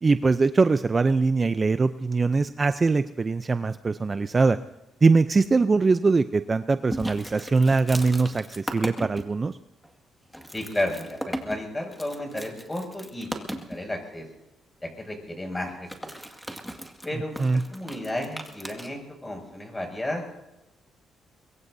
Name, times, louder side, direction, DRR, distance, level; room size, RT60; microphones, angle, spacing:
voice 1, 0.0-4.6 5.0-9.6 17.4-17.6, right 4 dB, 30° right, 11 dB, 0.5 m, -22 dB
sound 1, 6.9-9.2 9.8-9.9 10.3-13.8 15.7-18.9, equal, ahead, 2.0 m, -37 dB
voice 2, 10.5-14.3 14.8-16.1 17.0-20.3, left 1 dB, 15° left, 2 dB, 6.5 m, -33 dB
23.0 x 23.0 x 2.7 m, 0.92 s
cardioid pair, 90°, 0 cm